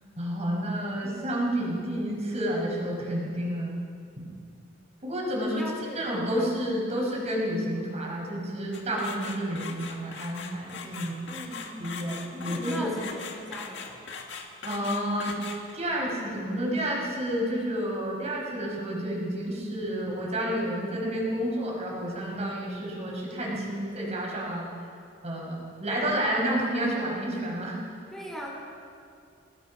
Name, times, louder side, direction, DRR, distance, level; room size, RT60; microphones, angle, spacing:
voice 1, 0.2-3.8 4.2-4.3 5.0-5.6 6.0-11.2 11.8-12.9 14.6-15.4 15.7-24.7 25.2-27.8, equal, 35° right, -2 dB, 5.8 m, -30 dB
voice 2, 5.4-6.9 11.3-12.0 12.4-14.0 28.1-28.6, equal, ahead, -2 dB, 4.2 m, -40 dB
sound 1, 8.7-15.9, left 5 dB, 65° left, 2.0 m, -40 dB
25.5 x 18.0 x 5.8 m, 2.3 s
head